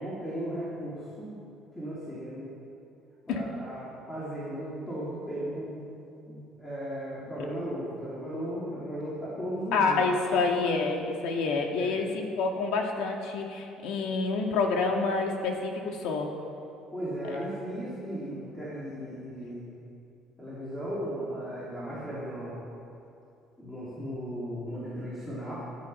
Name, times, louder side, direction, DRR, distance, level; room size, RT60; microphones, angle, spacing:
voice 1, 0.0-1.4 1.7-2.5 3.3-5.8 6.3-10.0 11.7-11.9 16.9-19.7 20.4-22.6 23.6-25.5, equal, 10° left, -9 dB, 3.2 m, -36 dB
voice 2, 9.7-16.3 17.3-17.4, left 4 dB, 70° left, 2 dB, 2.3 m, -28 dB
19.5 x 13.0 x 5.7 m, 2.7 s
cardioid pair, 170°, 0 cm